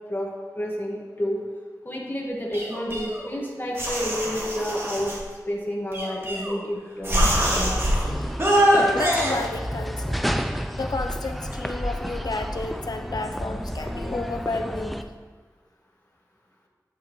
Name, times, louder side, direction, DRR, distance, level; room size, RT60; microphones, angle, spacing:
voice 1, 0.1-1.4 1.8-5.1 5.5-7.8, equal, 30° left, -3 dB, 1.6 m, -30 dB
sound 1, 2.5-3.4 3.8-5.2 5.9-6.7 7.0-8.0 8.4-9.3, equal, 40° right, 1.9 m, -23 dB
sound 2, 7.3-15.0, equal, ahead, 0.4 m, -31 dB
voice 2, 8.9-10.3 10.7-15.0, left 3 dB, 90° left, 6 dB, 0.6 m, -31 dB
9.0 x 7.2 x 3.1 m, 1.4 s
wide cardioid pair, 65°, 7 cm